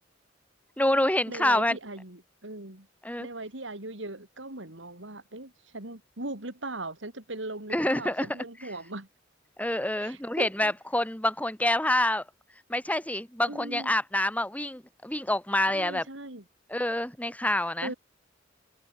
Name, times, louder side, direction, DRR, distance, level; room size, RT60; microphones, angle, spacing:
voice 1, 0.8-1.8 3.0-3.3 7.7-8.4 9.6-12.2 12.7-16.1 16.7-17.9, left 1 dB, 10° left, 3.8 m, -27 dB
voice 2, 1.3-2.9 3.2-9.1 10.0-10.7 13.5-13.9 15.7-16.4 17.8-17.9, right 2 dB, 70° right, 4.6 m, -39 dB
head